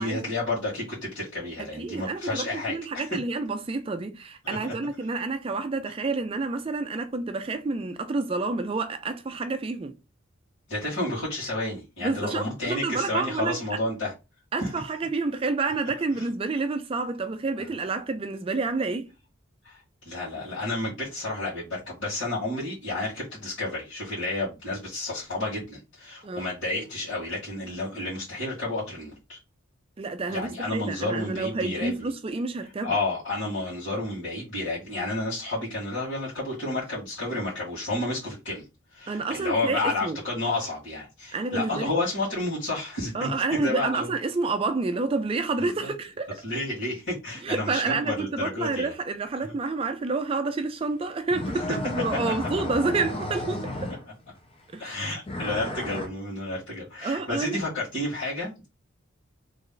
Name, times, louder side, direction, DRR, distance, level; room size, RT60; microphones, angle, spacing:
voice 1, 0.0-3.1 4.4-4.6 10.7-14.1 14.6-14.7 16.2-16.3 19.6-29.4 30.3-32.0 32.8-38.6 38.9-43.3 43.6-44.1 45.6-45.9 46.4-48.9 51.7-51.8 54.8-58.7, left 2 dB, 60° left, 1.9 m, -31 dB
voice 2, 1.6-9.9 12.0-13.6 14.5-19.1 26.2-26.4 30.0-33.0 39.1-40.2 41.3-41.9 43.1-46.4 47.4-53.9 54.7-55.0 57.0-57.6, right 3 dB, 25° right, 0.3 m, -29 dB
sound 1, 51.3-54.3 55.3-56.1, left 1 dB, 25° left, 0.6 m, -33 dB
3.1 x 2.5 x 3.8 m
head